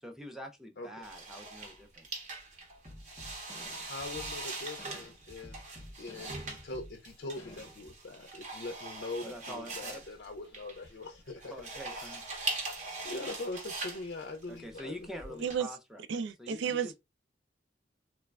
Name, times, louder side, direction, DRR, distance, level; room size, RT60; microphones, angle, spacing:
voice 1, 0.0-2.1 9.2-10.0 11.5-12.4 14.5-16.9, equal, ahead, 0.4 m, -46 dB
sound 1, 1.0-15.6, right 3 dB, 40° right, 0.7 m, -41 dB
sound 2, 2.8-8.0, left 1 dB, 15° left, 0.8 m, -51 dB
voice 2, 3.9-5.6 6.0-11.6 13.0-15.4, left 2 dB, 60° left, 0.4 m, -42 dB
voice 3, 16.1-17.0, right 7 dB, 80° right, 0.3 m, -32 dB
3.2 x 2.1 x 2.2 m
head